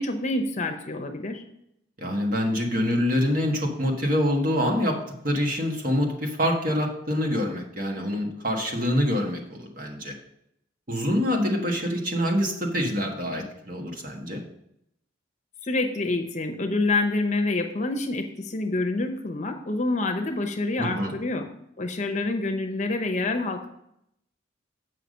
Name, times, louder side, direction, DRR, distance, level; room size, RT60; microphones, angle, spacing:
voice 1, 0.0-1.4 15.6-21.5 21.8-23.7, left 2 dB, 35° left, 6 dB, 0.8 m, -27 dB
voice 2, 2.0-5.0 5.2-10.1 10.9-14.4 20.8-21.1, equal, 45° right, 1 dB, 1.5 m, -25 dB
8.0 x 5.8 x 5.3 m, 0.77 s
head